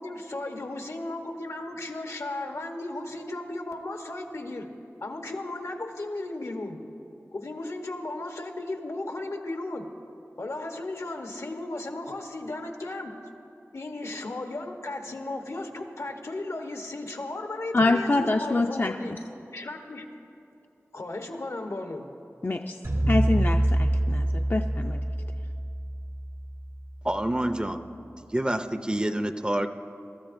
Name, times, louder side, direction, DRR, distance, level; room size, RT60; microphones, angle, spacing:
voice 1, 0.0-4.7 5.0-6.8 7.3-9.9 10.4-13.1 13.7-19.1 19.5-20.1 20.9-22.1, left 2 dB, 85° left, 3 dB, 1.0 m, -35 dB
voice 2, 17.7-19.2 22.4-22.8 23.1-25.0, left 2 dB, 45° left, 4 dB, 0.4 m, -26 dB
sound 1, 22.8-27.2, right 1 dB, 90° right, 2.5 m, -26 dB
voice 3, 27.0-27.8 28.3-29.7, right 1 dB, 20° right, 9 dB, 0.5 m, -27 dB
22.0 x 13.0 x 2.6 m, 2.8 s
wide cardioid pair, 65°, 5 cm